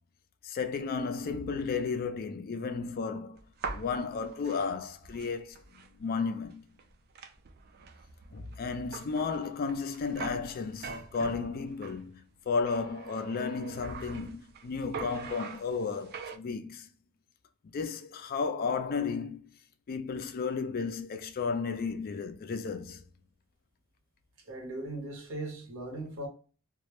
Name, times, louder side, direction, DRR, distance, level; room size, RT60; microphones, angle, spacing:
voice 1, 0.4-3.4 3.7-5.6 6.0-6.7 8.3-16.9 17.7-19.5 19.9-23.0, left 5 dB, 40° left, 0.3 m, -33 dB
sound 1, 3.4-6.0 6.4-6.5 6.8-12.0 12.6-14.7 14.9-16.4, right 4 dB, 45° right, 0.3 m, -43 dB
voice 2, 24.4-26.3, right 1 dB, 65° right, 0.8 m, -38 dB
2.2 x 2.0 x 2.9 m
head